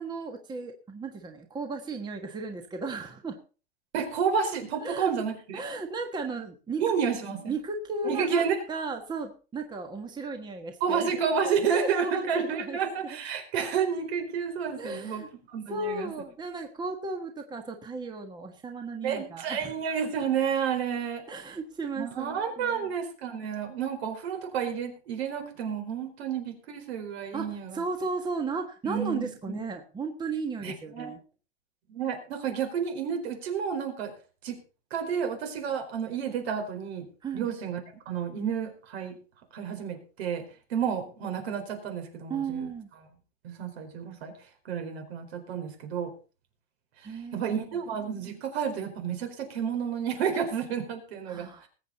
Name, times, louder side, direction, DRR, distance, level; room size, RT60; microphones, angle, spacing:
voice 1, 0.0-3.4 4.8-5.1 5.5-6.8 7.5-11.1 11.7-12.8 13.0-13.2 14.8-15.3 15.7-19.7 21.3-22.9 27.3-31.2 37.2-37.5 42.3-42.9 47.0-47.5 51.3-51.7, right 3 dB, 15° right, 5 dB, 1.4 m, -35 dB
voice 2, 3.9-5.6 6.8-7.5 8.0-8.6 10.8-16.1 19.0-21.2 21.9-27.8 28.8-29.6 30.6-31.1 31.9-34.1 34.4-34.6 34.9-37.1 37.3-37.8 38.1-39.2 39.5-40.4 40.7-42.7 43.4-44.3 44.6-46.1 47.0-51.7, right 7 dB, 65° right, 5 dB, 4.5 m, -30 dB
20.5 x 8.5 x 4.1 m, 0.36 s
supercardioid pair, 145°, 34 cm